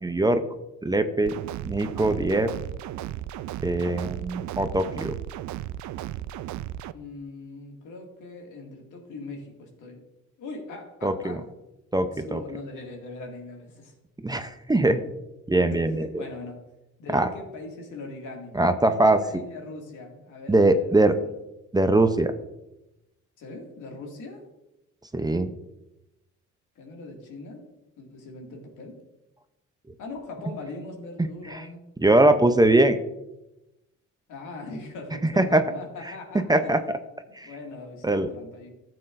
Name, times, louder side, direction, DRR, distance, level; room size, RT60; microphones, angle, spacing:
voice 1, 0.0-0.4 0.8-1.3 1.6-2.5 3.6-5.1 11.0-11.4 11.9-12.4 14.2-15.0 15.5-16.2 17.1-17.3 18.5-19.2 20.5-21.1 21.7-22.3 25.1-25.5 31.5-31.6 32.0-33.0 35.4-35.6 36.5-37.0 37.4-37.5 38.0-38.3, right 2 dB, 15° right, 8 dB, 0.7 m, -21 dB
sound 1, 1.2-6.9, right 12 dB, 70° right, 0.4 m, -35 dB
voice 2, 6.9-10.0 10.4-11.4 12.0-13.9 15.7-16.6 17.0-21.3 23.4-24.4 26.8-27.6 28.0-28.9 30.0-31.8 34.3-36.9 37.4-38.7, left 3 dB, 85° left, 1 dB, 2.2 m, -40 dB
13.5 x 7.8 x 2.6 m, 0.93 s
cardioid pair, 90°, 30 cm